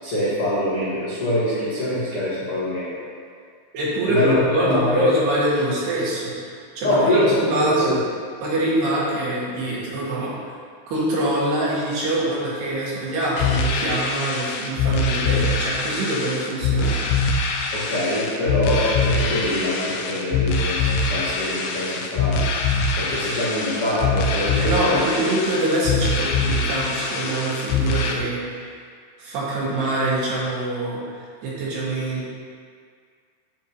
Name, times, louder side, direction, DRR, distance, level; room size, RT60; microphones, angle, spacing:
voice 1, 0.0-3.0 4.1-5.1 6.8-8.0 17.7-22.5 23.0-25.1, left 1 dB, 60° left, -10 dB, 1.5 m, -24 dB
voice 2, 3.7-7.9 8.4-10.3 10.9-17.1 24.6-28.8 29.2-32.3, right 1 dB, 65° right, -7 dB, 3.7 m, -24 dB
sound 1, 13.4-28.1, left 3 dB, 85° left, 3.3 m, -23 dB
14.0 x 6.3 x 3.0 m, 2.1 s
omnidirectional pair, 5.4 m